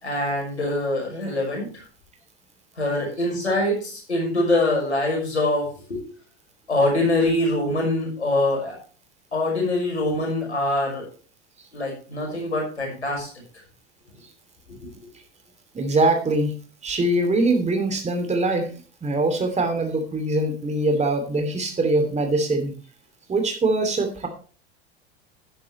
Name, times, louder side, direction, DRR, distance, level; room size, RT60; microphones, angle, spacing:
voice 1, 0.0-1.8 2.8-6.0 6.7-8.8 9.3-11.1 11.7-13.3 14.7-14.9, left 2 dB, 85° left, 0 dB, 5.9 m, -24 dB
voice 2, 15.7-16.5 16.8-22.7 23.3-24.3, right 2 dB, 20° right, 6 dB, 2.8 m, -23 dB
11.5 x 10.5 x 3.2 m, 0.39 s
figure-of-eight pair, 80°, 33 cm